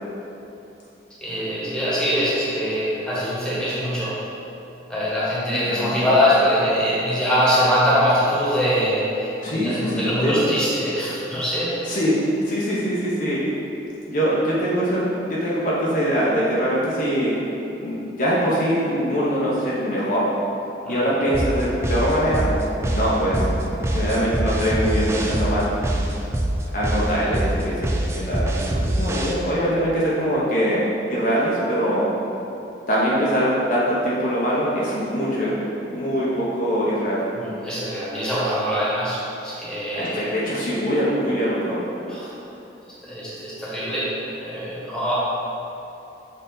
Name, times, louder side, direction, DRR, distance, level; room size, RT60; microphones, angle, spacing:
voice 1, 1.2-4.2 4.9-11.7 20.9-21.0 37.3-40.2 42.1-42.3 43.0-44.1 44.4-45.1, equal, 5° left, -9 dB, 1.4 m, -23 dB
voice 2, 5.5-5.9 9.4-10.5 11.8-12.2 12.4-13.4 14.1-17.3 17.8-20.3 20.9-22.5 22.9-23.5 23.9-25.7 26.7-30.8 31.1-32.1 32.9-35.5 35.9-37.2 39.9-41.8, equal, 45° left, -7 dB, 0.9 m, -23 dB
sound 1, 21.3-29.3, right 1 dB, 15° right, 0.4 m, -24 dB
6.6 x 4.0 x 3.9 m, 3.0 s
head